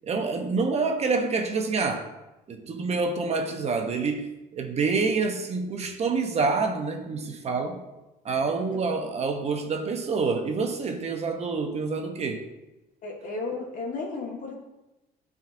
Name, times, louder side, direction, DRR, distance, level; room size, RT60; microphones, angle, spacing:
voice 1, 0.0-2.1 2.5-7.8 8.2-12.5, right 4 dB, 40° right, 5 dB, 0.7 m, -27 dB
voice 2, 8.5-8.9 13.0-14.5, left 3 dB, 50° left, 0 dB, 1.4 m, -34 dB
10.5 x 3.6 x 2.5 m, 0.99 s
cardioid pair, 110°, 17 cm